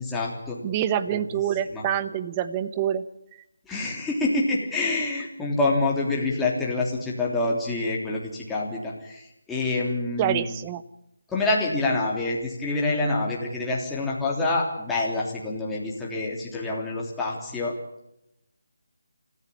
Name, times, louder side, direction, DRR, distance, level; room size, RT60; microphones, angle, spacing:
voice 1, 0.0-0.6 1.1-1.4 1.7-1.8 3.6-10.6 11.3-17.7, left 2 dB, 5° left, -4 dB, 3.3 m, -27 dB
voice 2, 0.6-3.0 10.2-10.8, right 10 dB, 20° right, 14 dB, 1.0 m, -26 dB
26.5 x 15.0 x 8.7 m, 0.85 s
figure-of-eight pair, 160°, 0 cm